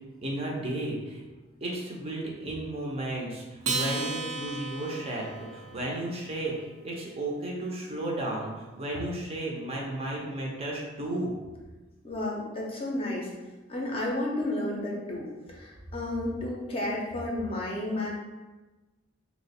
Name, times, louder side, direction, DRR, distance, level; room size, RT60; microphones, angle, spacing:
voice 1, 0.2-1.2 1.6-11.3, right 1 dB, 30° right, -2 dB, 0.5 m, -34 dB
Acoustic guitar, 3.6-6.3, right 3 dB, 90° right, 0.6 m, -34 dB
voice 2, 12.0-13.3 13.7-18.1, left 1 dB, 25° left, -3 dB, 0.5 m, -32 dB
2.9 x 2.0 x 4.1 m, 1.2 s
head